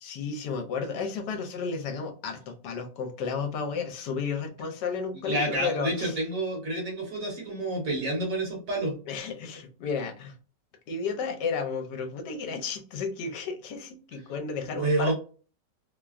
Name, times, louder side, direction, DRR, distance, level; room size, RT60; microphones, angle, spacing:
voice 1, 0.0-6.2 9.1-10.3 10.9-15.1, left 5 dB, 70° left, 4 dB, 1.2 m, -33 dB
voice 2, 5.2-9.0 14.7-15.1, right 1 dB, 50° right, -1 dB, 1.4 m, -29 dB
3.1 x 2.2 x 2.4 m, 0.38 s
omnidirectional pair, 2.0 m